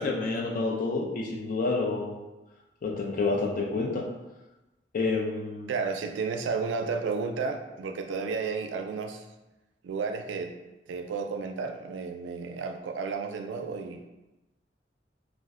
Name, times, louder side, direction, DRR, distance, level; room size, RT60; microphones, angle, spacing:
voice 1, 0.0-2.2 2.8-4.1 4.9-5.7, left 3 dB, 50° left, 0 dB, 0.4 m, -29 dB
voice 2, 5.7-9.2 9.8-10.5 10.9-14.0, right 5 dB, 90° right, 6 dB, 0.3 m, -32 dB
2.4 x 2.0 x 3.5 m, 1.0 s
head